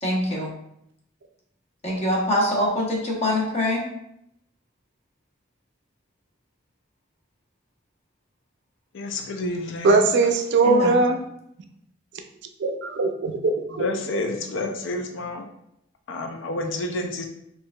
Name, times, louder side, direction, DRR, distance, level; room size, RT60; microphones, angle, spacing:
voice 1, 0.0-0.5 1.8-3.8 10.6-11.1, left 1 dB, 35° left, -3 dB, 0.9 m, -24 dB
voice 2, 8.9-10.1 13.8-15.5 16.1-17.2, left 2 dB, 70° left, 5 dB, 0.4 m, -29 dB
voice 3, 9.8-11.2 12.6-13.9, right 3 dB, 65° right, 6 dB, 0.4 m, -20 dB
4.5 x 2.6 x 2.3 m, 0.76 s
head